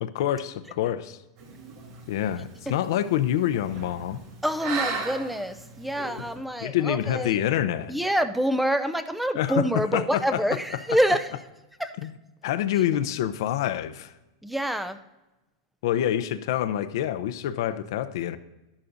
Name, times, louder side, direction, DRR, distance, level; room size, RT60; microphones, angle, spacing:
voice 1, 0.0-1.2 2.1-4.2 6.6-7.9 9.4-10.4 12.0-12.1 12.4-14.1 15.8-18.4, left 11 dB, 70° left, 0.6 m, -26 dB
sound 1, 1.4-6.4, right 4 dB, 60° right, 2.5 m, -37 dB
voice 2, 4.4-7.4 7.9-11.3 11.8-11.9 14.4-15.0, equal, ahead, 0.5 m, -26 dB
12.0 x 11.0 x 2.6 m
supercardioid pair, 125°, 2 cm